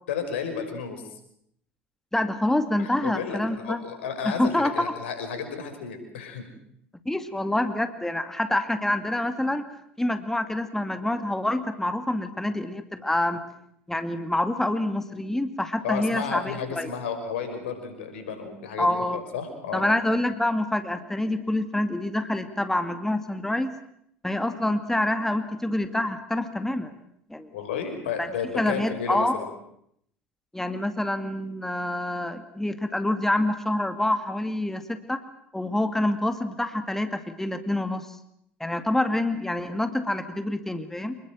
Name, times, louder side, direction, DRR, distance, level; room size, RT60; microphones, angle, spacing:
voice 1, 0.1-1.0 2.8-6.5 15.8-18.9 19.1-19.9 27.5-29.5, left 6 dB, 75° left, 7 dB, 5.7 m, -32 dB
voice 2, 2.1-3.8 4.2-4.9 7.1-9.7 10.0-13.4 13.9-16.9 18.8-19.2 19.7-23.7 24.2-26.9 27.3-27.5 28.2-28.3 28.6-29.4 30.5-35.2 35.5-38.2 38.6-41.2, left 1 dB, 5° left, 9 dB, 2.2 m, -26 dB
27.5 x 21.0 x 7.7 m, 0.73 s
figure-of-eight pair, 65°, 6 cm